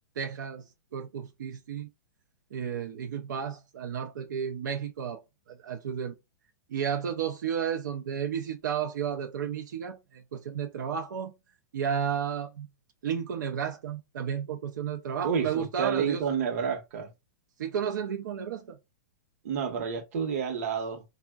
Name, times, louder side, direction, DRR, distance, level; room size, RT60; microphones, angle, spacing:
voice 1, 0.2-0.7 0.9-1.9 2.5-5.2 5.5-6.1 6.7-11.3 11.7-12.7 13.0-16.2 17.6-18.8, right 8 dB, 90° right, 0.4 m, -32 dB
voice 2, 15.2-17.1 19.4-21.0, right 7 dB, 55° right, 0.8 m, -30 dB
3.3 x 2.1 x 2.2 m
hypercardioid pair, 160°, 10 cm